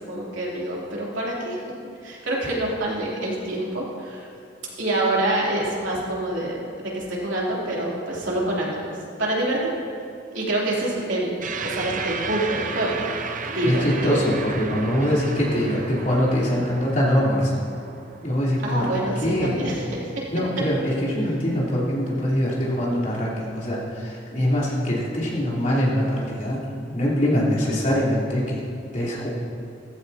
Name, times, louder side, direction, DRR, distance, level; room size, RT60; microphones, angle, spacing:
voice 1, 0.1-1.6 2.0-4.3 4.8-8.9 9.2-9.8 10.3-13.1 13.5-14.1 18.6-20.2, right 1 dB, 85° right, -5 dB, 3.2 m, -26 dB
sound 1, 11.4-20.1, right 5 dB, 45° right, 0.6 m, -34 dB
voice 2, 13.6-17.5 18.2-19.6 20.3-26.6 26.9-28.6 28.9-29.3, equal, 45° left, -7 dB, 3.6 m, -23 dB
15.5 x 15.0 x 2.9 m, 2.5 s
head